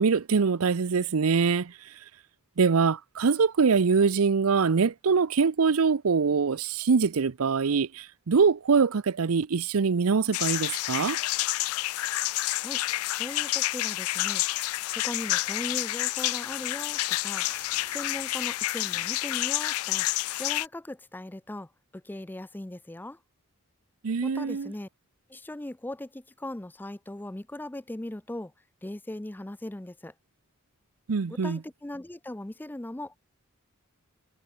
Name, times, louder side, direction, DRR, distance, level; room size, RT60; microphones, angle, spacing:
voice 1, 0.0-1.7 2.6-11.2 24.0-24.7 31.1-31.6, right 5 dB, 75° right, 0.6 m, -24 dB
sound 1, 10.3-20.7, left 17 dB, 75° left, 0.3 m, -29 dB
voice 2, 13.1-14.4 14.9-17.5 17.9-20.1 20.4-23.2 24.2-24.9 25.3-28.5 28.8-30.1 31.3-33.2, left 1 dB, 10° left, 0.4 m, -39 dB
sound 2, 14.9-19.5, right 6 dB, 45° right, 8.0 m, -56 dB
head